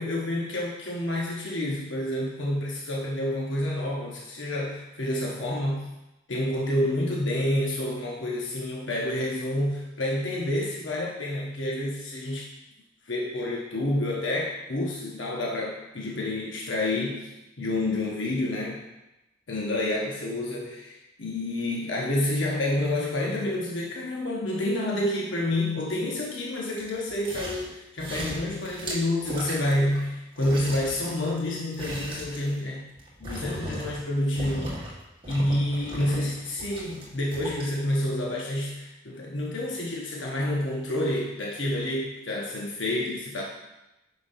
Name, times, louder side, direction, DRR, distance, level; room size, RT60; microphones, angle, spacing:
voice 1, 0.0-5.9 6.3-12.5 13.1-17.3 17.6-18.8 19.5-32.9 33.2-34.9 35.3-43.4, left 1 dB, 90° left, -3 dB, 1.0 m, -28 dB
sound 1, 26.8-27.7 28.0-30.1 30.4-34.1 34.3-34.9 35.2-37.6 38.1-38.2, right 1 dB, 30° right, 1.5 m, -37 dB
8.8 x 5.9 x 2.7 m, 0.95 s
head